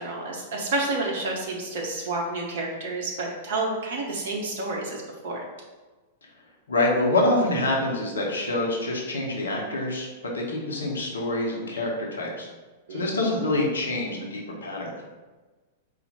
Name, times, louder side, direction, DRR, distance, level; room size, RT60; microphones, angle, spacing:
voice 1, 0.0-5.4 12.9-13.0, right 2 dB, 55° right, -1 dB, 0.7 m, -30 dB
voice 2, 6.7-10.1 10.3-12.5 12.9-15.0, left 2 dB, 70° left, -2 dB, 0.9 m, -26 dB
4.2 x 2.4 x 4.1 m, 1.3 s
figure-of-eight pair, 95°, 0 cm